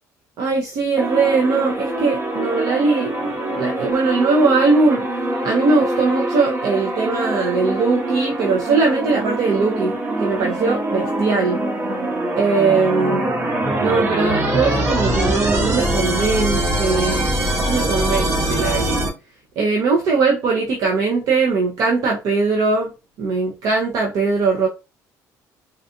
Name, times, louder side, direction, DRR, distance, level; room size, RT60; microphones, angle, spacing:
voice 1, 0.4-5.0 5.4-11.6 12.4-13.3 13.8-17.3 17.7-19.0 19.6-22.9 23.2-24.7, right 4 dB, 70° right, 0.8 m, -20 dB
sound 1, 1.0-19.1, right 1 dB, 40° right, 1.1 m, -23 dB
4.0 x 2.4 x 2.6 m
cardioid pair, 120°, 7 cm